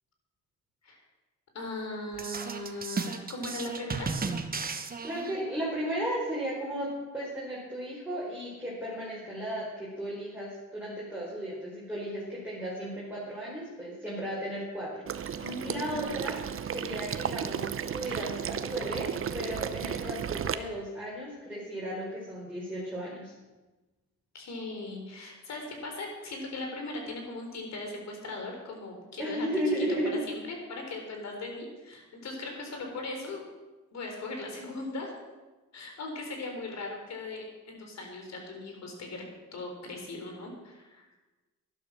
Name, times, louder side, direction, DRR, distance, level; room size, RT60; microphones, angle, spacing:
voice 1, 1.5-4.1 15.4-16.0 24.3-33.4 33.9-35.1 35.7-39.2 39.5-41.1, left 2 dB, 60° left, 2 dB, 4.1 m, -39 dB
sound 1, 2.1-5.6, right 4 dB, 30° right, 1.2 m, -35 dB
voice 2, 5.0-16.4 16.7-17.6 17.9-23.3 29.2-30.2, equal, 5° right, -7 dB, 4.9 m, -35 dB
Water / Liquid, 15.1-20.5, right 8 dB, 45° right, 0.8 m, -34 dB
11.5 x 11.5 x 6.4 m, 1.2 s
cardioid pair, 90°, 30 cm